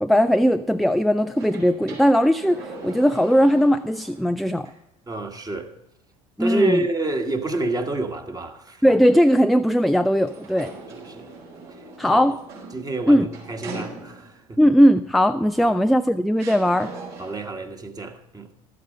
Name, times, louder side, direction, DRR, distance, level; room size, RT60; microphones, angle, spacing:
voice 1, 0.0-4.7 6.4-6.8 8.8-10.7 12.0-12.3 13.1-13.3 14.6-16.9, equal, ahead, 0.3 m, -18 dB
sound 1, 1.3-4.2 4.6-4.7 10.1-14.4 15.6-15.7 16.4-17.5, right 3 dB, 60° right, 4.2 m, -40 dB
voice 2, 5.1-5.7 6.4-8.8 11.1-11.3 12.1-12.2 12.7-14.6 15.6-15.8 17.2-18.5, right 2 dB, 20° right, 1.4 m, -27 dB
12.5 x 8.5 x 5.2 m
figure-of-eight pair, 65°, 19 cm